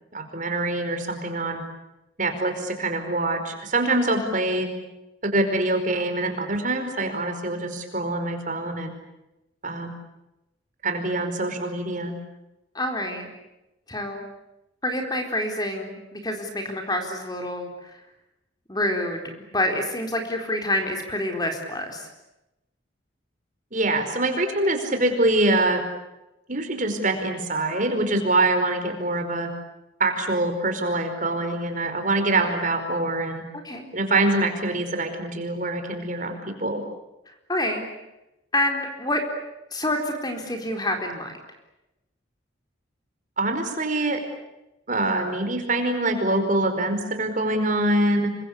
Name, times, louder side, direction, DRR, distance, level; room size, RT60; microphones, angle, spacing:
voice 1, 0.1-1.6 2.2-4.7 5.3-9.0 9.6-9.9 10.8-12.1 23.7-25.8 26.5-29.5 30.0-33.4 33.9-36.8 43.4-44.2 44.9-48.3, right 2 dB, 40° right, 6 dB, 4.9 m, -24 dB
voice 2, 12.7-13.3 13.9-14.2 14.8-18.0 18.7-19.2 19.5-22.1 33.6-33.9 37.5-37.9 38.5-39.2 39.7-41.3, left 1 dB, 20° left, 4 dB, 4.1 m, -27 dB
27.5 x 25.0 x 8.4 m, 0.93 s
head